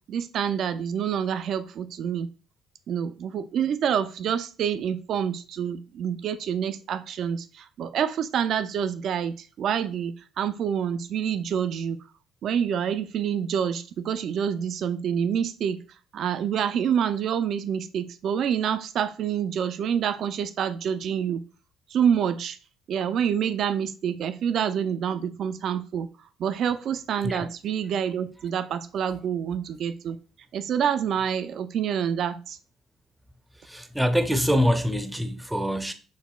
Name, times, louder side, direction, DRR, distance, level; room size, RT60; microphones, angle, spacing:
voice 1, 0.1-2.3 2.9-12.0 12.4-15.8 16.1-21.4 21.9-22.6 22.9-26.1 26.4-30.2 30.5-32.6, right 8 dB, 60° right, 0.3 m, -27 dB
voice 2, 33.7-35.9, equal, 5° right, 0.5 m, -24 dB
5.3 x 2.1 x 2.3 m
supercardioid pair, 70°, 0 cm